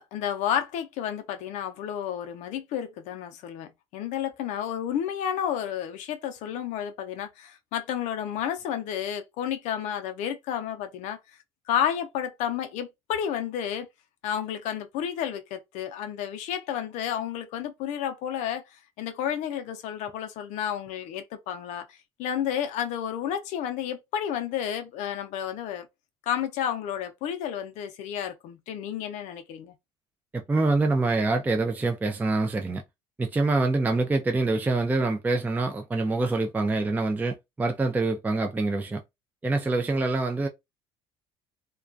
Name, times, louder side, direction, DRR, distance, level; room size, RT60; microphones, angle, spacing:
voice 1, 0.0-11.2 11.7-13.9 14.2-18.6 19.0-25.9 26.3-29.7, left 9 dB, 70° left, 0.5 m, -31 dB
voice 2, 30.3-32.8 33.2-39.0 39.4-40.5, right 3 dB, 15° right, 0.4 m, -25 dB
2.2 x 2.2 x 2.5 m
supercardioid pair, 85°, 13 cm